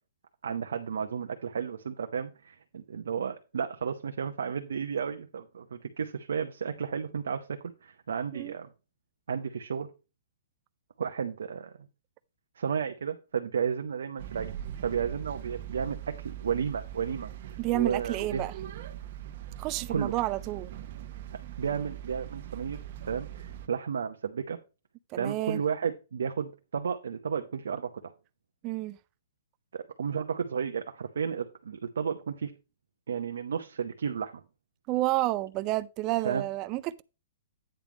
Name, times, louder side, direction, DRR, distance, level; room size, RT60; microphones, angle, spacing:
voice 1, 0.4-8.7 9.3-9.9 11.0-11.8 12.6-14.5 14.8-18.5 19.9-20.1 21.3-22.8 23.0-24.6 25.1-28.1 29.7-32.5 33.1-34.4 36.2-36.4, right 7 dB, 80° right, 0.8 m, -33 dB
sound 1, 14.2-23.7, right 11 dB, 55° right, 1.2 m, -41 dB
voice 2, 17.6-18.5 19.6-20.7 25.1-25.6 28.6-29.0 34.9-37.0, right 17 dB, 30° right, 0.4 m, -30 dB
8.9 x 3.5 x 5.9 m
hypercardioid pair, 140°, 0 cm